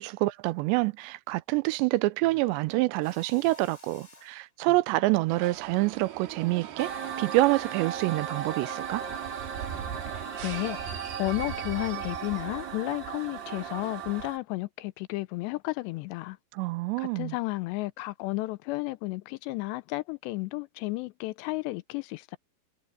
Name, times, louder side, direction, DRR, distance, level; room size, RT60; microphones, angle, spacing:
voice 1, 0.0-6.9 7.2-9.0 16.5-17.3, right 20 dB, 80° right, 2.8 m, -27 dB
Mechanisms, 3.0-4.5, left 2 dB, 20° left, 4.2 m, -52 dB
sound 1, 5.3-14.3, right 9 dB, 65° right, 3.6 m, -41 dB
sound 2, 6.8-14.4, right 7 dB, 40° right, 1.8 m, -37 dB
voice 2, 10.1-16.4 17.0-22.4, left 21 dB, 80° left, 2.7 m, -33 dB
omnidirectional pair, 5.2 m